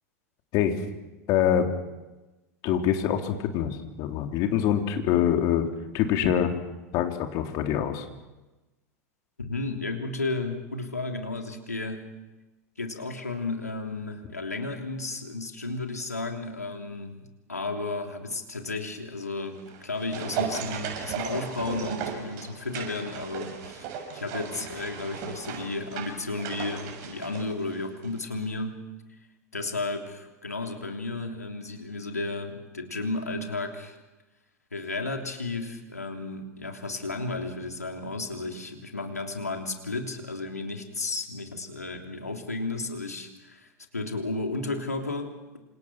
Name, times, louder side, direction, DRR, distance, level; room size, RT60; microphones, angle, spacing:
voice 1, 1.3-1.7 2.6-5.7 5.9-6.6 6.9-8.1, left 9 dB, 45° left, 4 dB, 3.5 m, -24 dB
voice 2, 9.4-12.1 12.8-28.8 29.5-34.0 34.7-45.6, left 3 dB, 85° left, 3 dB, 3.3 m, -33 dB
sound 1, 19.5-28.2 28.4-28.5, right 7 dB, 45° right, 7.1 m, -36 dB
28.0 x 27.5 x 6.2 m, 1.1 s
figure-of-eight pair, 85°, 8 cm